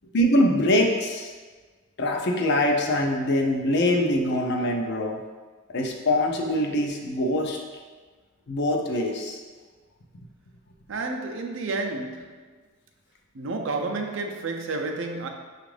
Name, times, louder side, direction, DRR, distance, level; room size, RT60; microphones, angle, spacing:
voice 1, 0.1-1.3 2.0-5.2 5.7-7.6 8.5-9.4, left 1 dB, 55° left, 1 dB, 0.5 m, -23 dB
voice 2, 10.9-12.5 13.3-15.3, right 3 dB, 65° right, 3 dB, 0.5 m, -30 dB
5.9 x 2.4 x 3.2 m, 1.4 s
head